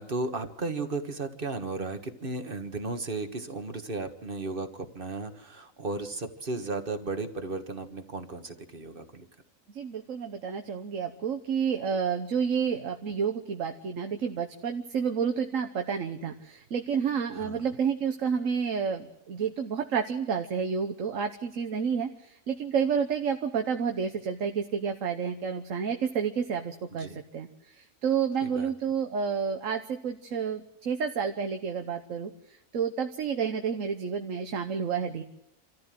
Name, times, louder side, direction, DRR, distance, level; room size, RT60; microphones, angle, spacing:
voice 1, 0.0-9.3 17.3-17.7 26.9-27.2 28.4-28.7, right 3 dB, 40° right, 8 dB, 1.7 m, -35 dB
voice 2, 9.7-27.5 27.7-32.3 32.7-35.2, right 6 dB, 75° right, 6 dB, 1.5 m, -30 dB
26.5 x 14.5 x 7.7 m, 0.89 s
omnidirectional pair, 1.4 m